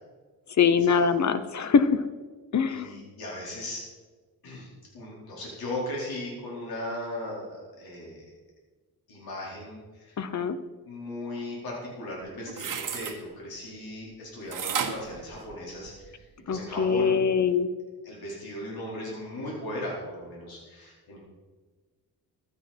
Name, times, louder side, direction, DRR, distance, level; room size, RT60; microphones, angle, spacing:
voice 1, 0.6-2.0 2.5-2.9 10.2-10.6 16.5-17.7, left 6 dB, 50° left, 12 dB, 1.0 m, -23 dB
voice 2, 2.7-3.8 4.4-4.7 4.9-8.3 9.1-10.2 10.9-17.2 18.0-21.2, left 1 dB, 85° left, -4 dB, 4.7 m, -37 dB
sound 1, 12.2-13.2 14.5-16.1 16.5-16.6, right 7 dB, 60° right, 1.6 m, -33 dB
15.5 x 12.0 x 4.5 m, 1.4 s
cardioid pair, 105°, 36 cm